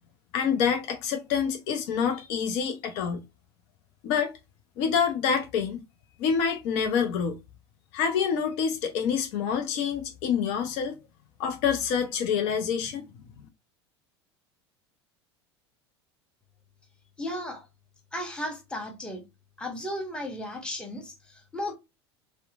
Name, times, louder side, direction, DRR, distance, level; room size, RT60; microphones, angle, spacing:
voice 1, 0.3-3.2 4.0-4.3 4.8-5.8 6.2-7.4 7.9-11.0 11.4-13.0, left 7 dB, 50° left, 0.5 m, -27 dB
voice 2, 17.2-17.7 18.1-19.2 19.6-21.7, left 1 dB, 5° left, 0.8 m, -35 dB
2.9 x 2.1 x 2.3 m
figure-of-eight pair, 75°, 14 cm